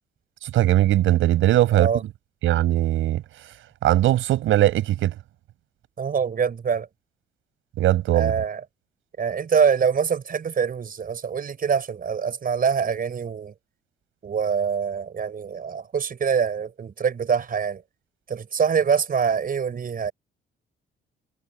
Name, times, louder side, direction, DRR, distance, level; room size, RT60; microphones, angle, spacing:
voice 1, 0.4-1.9 2.4-3.2 3.8-5.2 7.8-8.3, right 14 dB, 85° right, 6.2 m, -20 dB
voice 2, 1.7-2.0 6.0-6.9 8.1-8.6 9.2-13.5 14.2-17.8 18.3-20.1, right 6 dB, 45° right, 5.5 m, -24 dB
cardioid pair, 90°, 20 cm